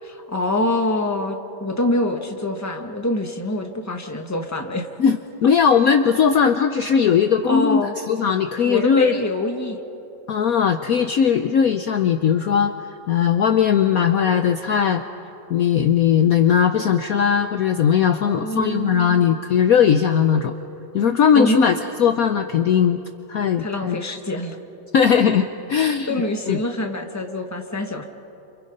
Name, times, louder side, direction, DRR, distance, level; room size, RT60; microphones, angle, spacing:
voice 1, 0.0-4.9 7.4-7.9 8.6-9.8 18.0-19.1 21.3-21.7 23.6-24.6 26.1-28.1, left 1 dB, 10° left, 3 dB, 1.4 m, -25 dB
voice 2, 5.0-9.2 10.3-12.7 13.1-15.0 15.5-20.5 20.9-23.0 23.3-24.0 24.9-26.1 26.5-26.6, left 7 dB, 60° left, 7 dB, 1.1 m, -18 dB
29.5 x 28.0 x 5.5 m, 3.0 s
omnidirectional pair, 2.0 m